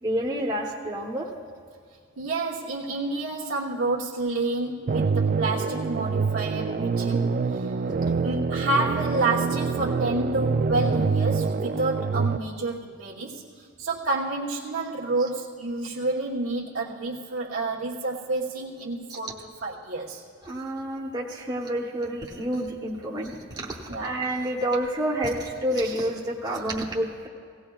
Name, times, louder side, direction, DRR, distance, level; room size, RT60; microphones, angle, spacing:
voice 1, 0.0-1.3 19.1-19.2 20.4-27.3, right 1 dB, 20° right, -3 dB, 1.0 m, -29 dB
voice 2, 2.2-7.9 8.2-19.3 19.6-20.2 23.9-24.2, right 2 dB, 90° right, -7 dB, 1.2 m, -29 dB
sound 1, 4.9-12.4, right 4 dB, 40° right, 0.3 m, -26 dB
17.5 x 17.0 x 2.4 m, 2.1 s
head